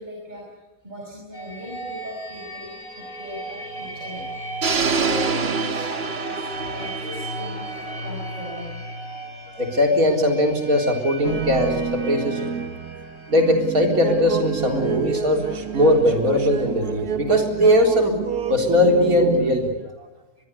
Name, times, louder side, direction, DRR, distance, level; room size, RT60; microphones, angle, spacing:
voice 1, 0.0-4.3 4.8-8.7, equal, 30° right, -2 dB, 5.8 m, -38 dB
sound 1, 1.3-17.0, right 1 dB, 65° left, 4.1 m, -37 dB
sound 2, 4.6-8.6, right 5 dB, 45° right, 1.5 m, -26 dB
voice 2, 9.5-12.5 13.3-18.1 18.5-19.7, left 1 dB, 70° right, 3 dB, 4.4 m, -20 dB
sound 3, 11.2-19.7, right 7 dB, 90° right, 2.0 m, -29 dB
23.0 x 22.5 x 8.2 m, 1.1 s
omnidirectional pair, 1.6 m